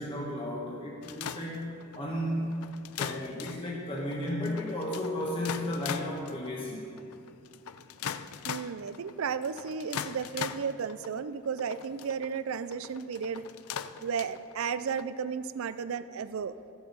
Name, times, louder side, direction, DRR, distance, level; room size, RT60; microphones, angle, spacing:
voice 1, 0.0-1.7 1.9-2.7 3.0-6.8, left 1 dB, 25° left, -4 dB, 1.3 m, -34 dB
sound 1, 1.0-15.0, left 8 dB, 85° left, 0.4 m, -40 dB
voice 2, 8.4-13.4 14.0-16.5, right 6 dB, 70° right, 14 dB, 0.4 m, -34 dB
14.5 x 7.9 x 5.4 m, 2.5 s
head